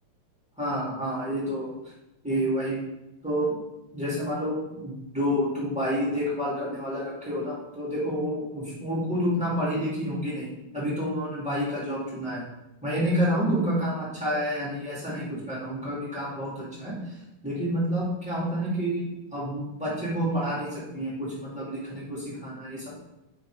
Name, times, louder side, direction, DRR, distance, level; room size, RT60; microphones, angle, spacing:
voice 1, 0.6-1.7 2.2-2.8 3.2-3.6 3.9-10.5 10.7-12.4 12.8-17.2 17.4-19.0 19.3-22.9, equal, 5° right, -9 dB, 0.6 m, -29 dB
7.4 x 4.5 x 4.6 m, 0.94 s
omnidirectional pair, 4.6 m